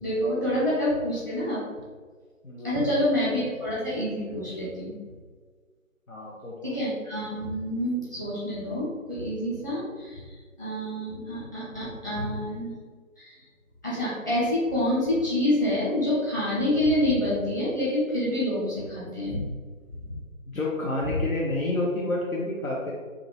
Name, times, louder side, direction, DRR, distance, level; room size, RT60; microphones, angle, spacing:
voice 1, 0.0-1.6 2.6-4.9 6.6-10.2 10.6-12.7 13.2-13.4 13.8-19.4 20.0-20.1, left 1 dB, 15° left, -9 dB, 1.0 m, -27 dB
voice 2, 2.4-3.0 6.1-6.8 20.5-22.9, left 2 dB, 75° left, -4 dB, 1.1 m, -30 dB
5.1 x 2.7 x 3.1 m, 1.6 s
figure-of-eight pair, 155°, 41 cm